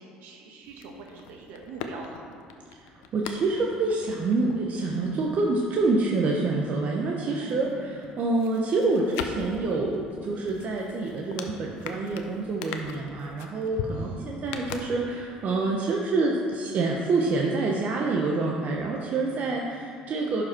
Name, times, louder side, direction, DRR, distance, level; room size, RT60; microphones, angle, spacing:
voice 1, 0.0-2.3 7.4-7.9 13.9-14.3, right 3 dB, 70° right, 1 dB, 1.4 m, -43 dB
sound 1, 0.6-7.2 7.5-15.5 15.7-15.8, left 6 dB, 80° left, 0.6 m, -41 dB
voice 2, 2.8-20.4, right 3 dB, 50° right, -1 dB, 0.9 m, -27 dB
11.5 x 5.3 x 4.3 m, 2.3 s
supercardioid pair, 80°, 3 cm